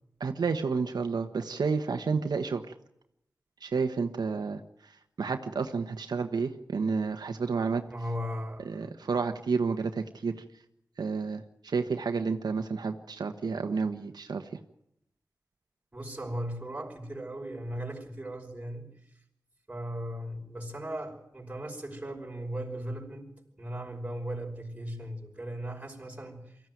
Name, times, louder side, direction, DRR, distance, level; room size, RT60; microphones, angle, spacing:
voice 1, 0.2-2.6 3.6-4.6 5.2-7.8 8.6-10.4 11.0-14.5, right 5 dB, 90° right, 1.3 m, -30 dB
voice 2, 7.9-8.9 15.9-18.9 19.7-23.3 23.6-26.6, equal, 20° right, 5.5 m, -37 dB
24.0 x 15.0 x 9.3 m
wide cardioid pair, 75°, 7 cm